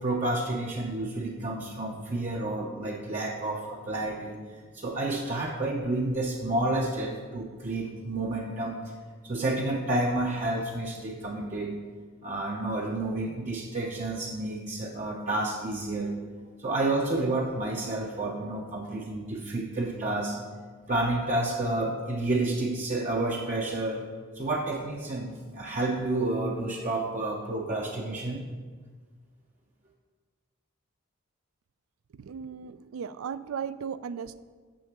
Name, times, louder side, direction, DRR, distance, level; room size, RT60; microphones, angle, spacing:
voice 1, 0.0-4.4 4.7-8.8 9.2-11.7 12.2-16.1 16.6-20.4 20.9-24.0 24.3-28.4, right 2 dB, 35° right, -2 dB, 0.6 m, -30 dB
voice 2, 32.2-34.4, right 7 dB, 80° right, 15 dB, 0.4 m, -36 dB
6.6 x 6.3 x 5.8 m, 1.5 s
head